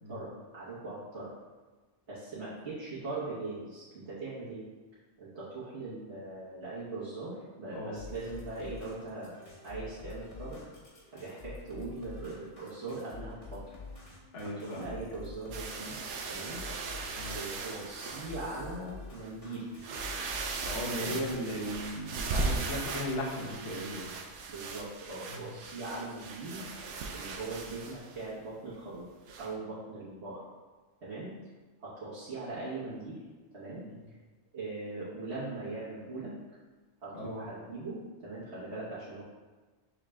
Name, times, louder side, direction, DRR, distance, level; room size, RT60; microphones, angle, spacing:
voice 1, 0.5-1.3 2.1-4.6 5.2-9.3 9.6-10.6 11.1-13.6 14.6-16.0 16.3-16.6 17.3-19.6 20.9-21.1 24.5-26.6 27.1-29.1 29.4-30.4 31.0-31.3 31.8-33.2 33.5-33.8 34.5-36.3 37.0-39.2, right 3 dB, 70° right, -11 dB, 1.4 m, -40 dB
sound 1, 8.0-21.7, left 3 dB, 35° left, 1.1 m, -48 dB
voice 2, 14.3-15.0 17.2-17.4 20.7-24.1 25.3-25.5 33.9-34.0 37.1-37.4, left 1 dB, 65° left, -3 dB, 1.1 m, -37 dB
sound 2, 15.5-18.7 19.2-19.3 19.7-28.3 29.3-29.5, right 4 dB, 85° right, 0.9 m, -38 dB
6.4 x 2.4 x 3.2 m, 1.3 s
omnidirectional pair, 1.2 m